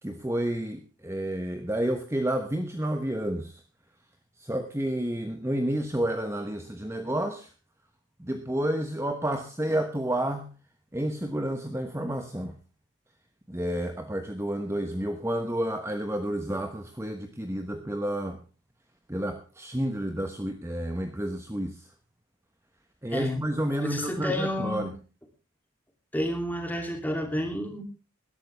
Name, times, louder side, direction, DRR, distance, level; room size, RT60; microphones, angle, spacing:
voice 1, 0.0-3.6 4.4-7.5 8.2-10.5 10.9-12.6 13.5-18.4 19.1-21.9 23.0-24.9, right 1 dB, 15° right, 7 dB, 1.0 m, -30 dB
voice 2, 23.1-23.4 23.8-24.9 26.1-27.8, left 1 dB, 10° left, 4 dB, 2.8 m, -30 dB
20.0 x 12.0 x 3.4 m, 0.32 s
head